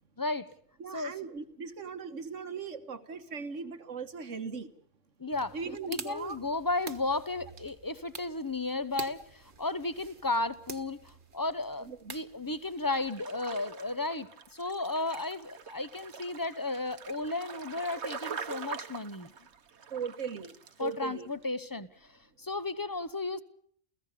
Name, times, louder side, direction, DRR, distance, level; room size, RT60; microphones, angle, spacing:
voice 1, 0.2-0.5 0.9-1.2 5.2-19.3 20.8-22.1 22.4-23.4, left 2 dB, 20° left, 13 dB, 0.9 m, -34 dB
voice 2, 0.8-4.7 5.5-6.4 11.8-12.2 19.9-20.5 20.8-21.3, right 5 dB, 85° right, 9 dB, 1.8 m, -38 dB
sound 1, 5.3-13.1, right 4 dB, 45° right, 1.4 m, -48 dB
sound 2, 12.7-21.0 21.3-21.4, right 6 dB, 65° right, 1.4 m, -44 dB
29.5 x 16.0 x 6.8 m, 0.62 s
omnidirectional pair, 1.2 m